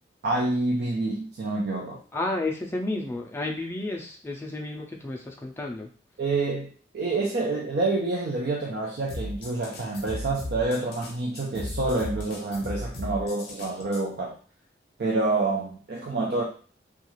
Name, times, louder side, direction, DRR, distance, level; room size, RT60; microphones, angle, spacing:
voice 1, 0.2-2.0 6.2-14.4 15.0-16.4, right 2 dB, 65° right, -2 dB, 0.4 m, -27 dB
voice 2, 2.1-5.9, left 2 dB, 15° left, 0 dB, 0.4 m, -31 dB
sound 1, 9.1-14.0, left 1 dB, 60° left, 0.7 m, -36 dB
2.3 x 2.3 x 3.0 m, 0.40 s
head